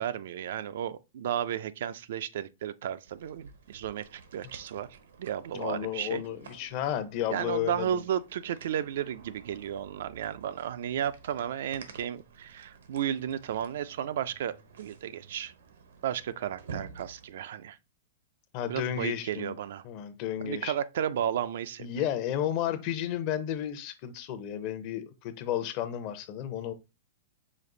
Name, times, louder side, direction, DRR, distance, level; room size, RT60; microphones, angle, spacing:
voice 1, 0.0-4.9 5.2-6.2 7.3-15.5 16.0-17.8 18.7-19.8 20.4-21.9, right 10 dB, 70° right, 0.3 m, -33 dB
sound 1, 3.0-17.3, right 5 dB, 85° right, 0.9 m, -51 dB
voice 2, 5.5-8.0 18.5-19.5 19.8-20.7 21.8-26.7, left 10 dB, 45° left, 0.6 m, -32 dB
5.1 x 2.4 x 3.8 m
hypercardioid pair, 145°, 0 cm